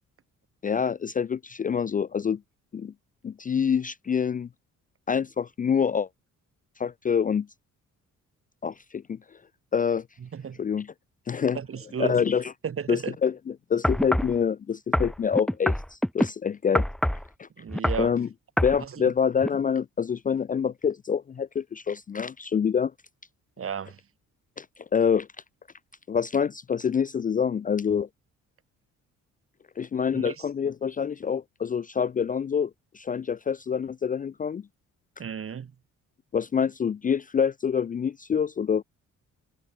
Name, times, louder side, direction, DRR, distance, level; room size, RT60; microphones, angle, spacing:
voice 1, 0.6-2.4 2.7-2.9 3.2-4.5 5.1-6.1 6.8-7.5 8.6-9.2 9.7-10.0 10.6-10.9 11.3-11.6 12.0-12.5 12.9-16.8 17.4-17.5 18.0-18.3 18.6-22.9 24.6-24.7 24.9-25.3 26.1-28.1 29.8-34.6 36.3-38.8, left 7 dB, 30° left, 0.4 m, -26 dB
voice 2, 10.2-10.6 11.5-12.2 12.6-13.2 17.6-18.1 18.8-19.1 23.6-24.0 30.1-30.4 35.2-35.7, right 7 dB, 45° right, 2.9 m, -34 dB
sound 1, 13.8-14.4 14.9-16.3 16.7-17.3 17.7-18.1 18.6-18.8 19.4-19.5, equal, ahead, 0.9 m, -25 dB
cardioid pair, 90°, 30 cm